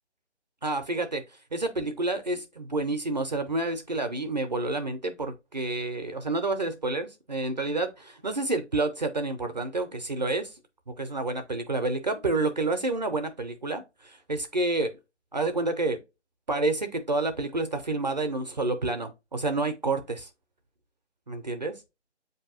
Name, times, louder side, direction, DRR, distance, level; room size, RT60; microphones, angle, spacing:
voice 1, 0.6-10.6 11.0-14.9 15.3-16.0 16.5-20.3 21.3-21.7, right 2 dB, 40° right, 0.4 m, -29 dB
7.0 x 2.7 x 2.3 m
figure-of-eight pair, 160°, 34 cm